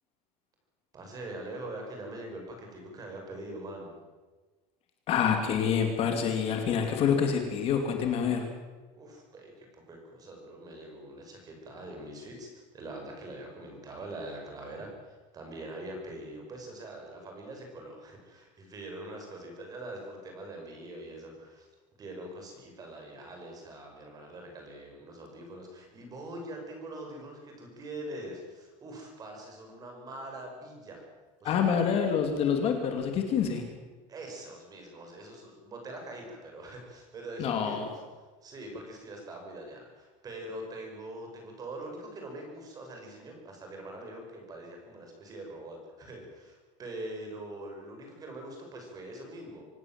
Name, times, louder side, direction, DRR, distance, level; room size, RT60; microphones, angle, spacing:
voice 1, 0.9-4.0 8.9-21.7 22.0-31.0 31.4-31.9 34.1-38.0 38.4-49.6, right 1 dB, 20° right, 2 dB, 5.9 m, -43 dB
voice 2, 5.1-8.4 31.4-33.6 37.4-37.9, left 7 dB, 35° left, 5 dB, 2.6 m, -27 dB
25.5 x 18.0 x 7.6 m, 1.3 s
cardioid pair, 180°, 17 cm